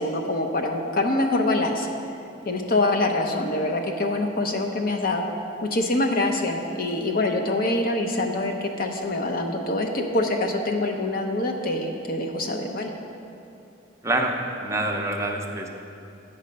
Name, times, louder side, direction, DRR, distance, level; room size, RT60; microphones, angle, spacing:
voice 1, 0.0-1.9 2.4-5.3 5.6-12.9, left 2 dB, 50° left, 3 dB, 0.7 m, -25 dB
voice 2, 14.0-14.3 14.6-15.7, right 2 dB, 15° right, 1 dB, 0.6 m, -26 dB
8.2 x 5.5 x 5.2 m, 2.6 s
head